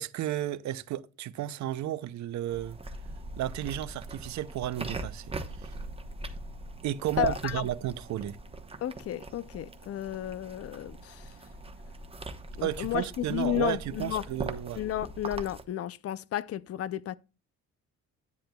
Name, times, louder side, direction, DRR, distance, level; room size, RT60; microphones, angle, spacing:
voice 1, 0.0-2.8 3.4-5.7 6.8-8.4 12.6-14.8, right 12 dB, 70° right, 0.6 m, -33 dB
sound 1, 2.5-15.6, right 2 dB, 20° right, 1.0 m, -41 dB
voice 2, 7.2-7.7 8.8-11.3 12.6-14.2 14.8-17.1, left 12 dB, 50° left, 0.5 m, -32 dB
10.5 x 8.6 x 2.3 m
cardioid pair, 90°, 30 cm